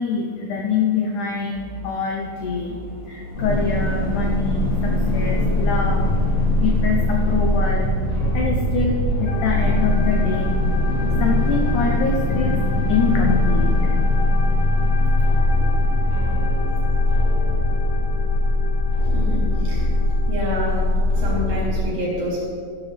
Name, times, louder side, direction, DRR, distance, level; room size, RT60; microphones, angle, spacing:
voice 1, 0.0-2.8 3.1-6.0 6.6-7.9 8.3-10.5 11.2-12.6 12.9-13.7 15.5-15.7, left 5 dB, 85° left, 1 dB, 1.7 m, -25 dB
sound 1, 1.5-14.0 14.2-14.3, equal, 90° right, 4.5 m, -38 dB
sound 2, 3.3-21.8, left 1 dB, 30° left, 1.7 m, -20 dB
sound 3, 9.3-21.4, left 4 dB, 70° left, 2.3 m, -35 dB
voice 2, 19.1-19.8 20.3-20.8 21.2-22.4, left 1 dB, 60° right, -7 dB, 4.9 m, -27 dB
14.5 x 11.0 x 3.4 m, 2.1 s
omnidirectional pair, 4.7 m